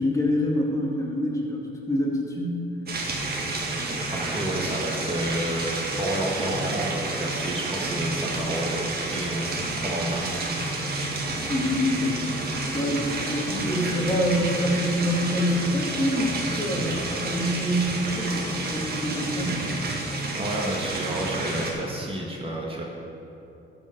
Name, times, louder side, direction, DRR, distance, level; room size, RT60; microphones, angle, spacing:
voice 1, 0.0-2.6 11.5-12.2 12.7-19.6, equal, 15° left, -3 dB, 2.2 m, -26 dB
sound 1, 2.9-21.7, right 2 dB, 50° right, 1.8 m, -30 dB
voice 2, 4.1-5.7 6.0-10.2 20.4-22.9, right 1 dB, 25° right, -2 dB, 1.6 m, -30 dB
12.5 x 5.3 x 6.5 m, 2.8 s
cardioid pair, 90°, 20 cm